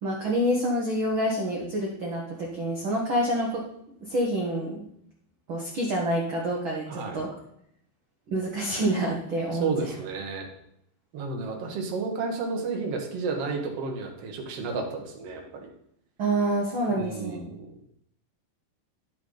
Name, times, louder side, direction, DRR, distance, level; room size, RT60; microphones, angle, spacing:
voice 1, 0.0-3.6 4.0-4.9 5.5-7.3 8.3-9.9 16.2-17.4, right 1 dB, 85° right, -2 dB, 1.1 m, -27 dB
voice 2, 6.9-7.2 9.6-10.5 11.1-15.7 16.9-17.7, right 4 dB, 55° right, 1 dB, 1.8 m, -32 dB
10.5 x 7.0 x 3.9 m, 0.72 s
omnidirectional pair, 4.4 m